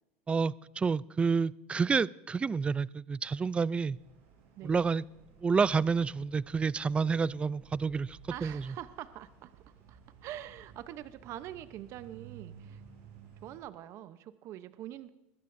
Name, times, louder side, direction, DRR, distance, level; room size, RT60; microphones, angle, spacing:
voice 1, 0.3-4.0 4.6-5.0 5.4-8.6, right 5 dB, 20° right, 21 dB, 0.4 m, -29 dB
sound 1, 3.9-13.6, right 7 dB, 85° right, 5.1 m, -55 dB
voice 2, 8.3-9.6 9.9-12.8 13.4-15.1, right 12 dB, 55° right, 12 dB, 0.8 m, -44 dB
21.0 x 15.0 x 2.7 m, 0.90 s
supercardioid pair, 105°, 6 cm